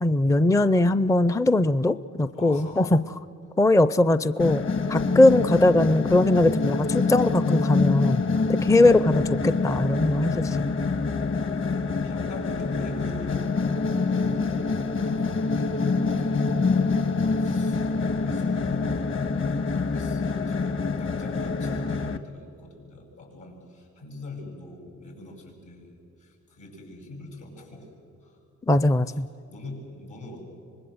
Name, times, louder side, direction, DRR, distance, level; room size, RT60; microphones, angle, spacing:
voice 1, 0.0-3.0 3.6-4.6 4.9-8.2 8.5-10.6 28.7-29.3, left 2 dB, 10° left, 15 dB, 0.5 m, -20 dB
voice 2, 2.3-3.0 9.0-9.8 11.5-27.9 28.2-28.4 29.1-29.2 29.5-30.5, left 2 dB, 80° left, 1 dB, 8.0 m, -43 dB
sound 1, 4.4-22.2, left 4 dB, 45° left, 1.5 m, -26 dB
25.0 x 20.5 x 7.9 m, 2.7 s
cardioid pair, 90°, 30 cm